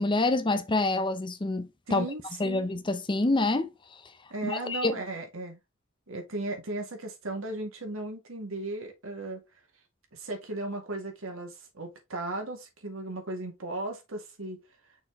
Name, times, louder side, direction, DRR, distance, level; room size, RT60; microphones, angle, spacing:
voice 1, 0.0-2.1 2.4-3.7 4.4-4.9, left 2 dB, 25° left, 0.6 m, -27 dB
voice 2, 1.9-2.7 4.3-5.6 6.1-9.4 10.1-14.6, right 2 dB, 75° right, 2.2 m, -36 dB
6.3 x 4.4 x 3.5 m
head